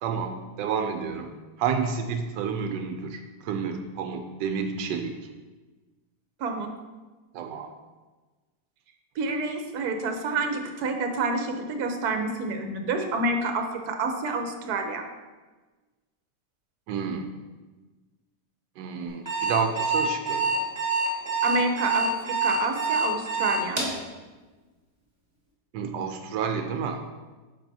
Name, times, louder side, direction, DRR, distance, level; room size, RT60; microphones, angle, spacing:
voice 1, 0.0-1.3 1.6-5.3 7.3-7.7 16.9-17.3 18.8-20.5 25.7-27.0, right 6 dB, 85° right, 5 dB, 1.2 m, -30 dB
voice 2, 9.2-15.1 21.4-23.8, right 3 dB, 65° right, 5 dB, 1.3 m, -28 dB
Alarm, 19.1-24.0, right 4 dB, 15° right, 1.6 m, -25 dB
8.8 x 5.7 x 2.7 m, 1.3 s
omnidirectional pair, 1.9 m